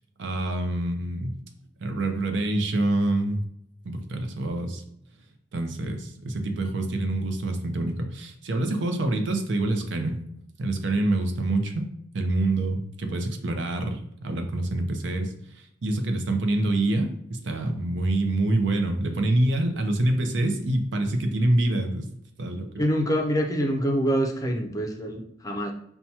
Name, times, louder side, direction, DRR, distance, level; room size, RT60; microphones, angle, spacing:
voice 1, 0.2-1.4 1.8-3.4 3.8-4.8 5.5-10.2 10.6-11.9 12.1-22.1 22.4-22.7, right 2 dB, 75° right, 5 dB, 0.6 m, -26 dB
voice 2, 22.8-25.7, equal, 20° left, 3 dB, 0.4 m, -25 dB
5.6 x 2.2 x 2.8 m, 0.73 s
head